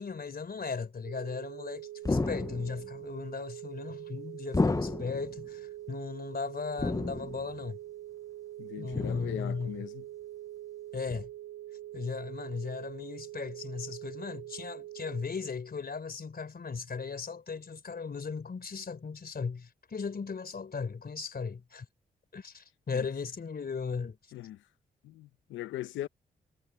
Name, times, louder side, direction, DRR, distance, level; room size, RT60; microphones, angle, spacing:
voice 1, 0.0-7.8 8.8-9.8 10.9-11.3 11.9-21.9 22.3-24.2, left 5 dB, 55° left, 3.8 m, -37 dB
sound 1, 1.0-15.2, right 14 dB, 70° right, 2.2 m, -44 dB
sound 2, 2.1-2.9 4.5-5.3 6.8-7.5 8.9-9.5 11.1-11.2, left 3 dB, 20° left, 0.5 m, -31 dB
voice 2, 8.6-10.1 22.9-23.1 24.3-24.6 25.0-26.1, left 14 dB, 90° left, 0.8 m, -40 dB
supercardioid pair, 45°, 19 cm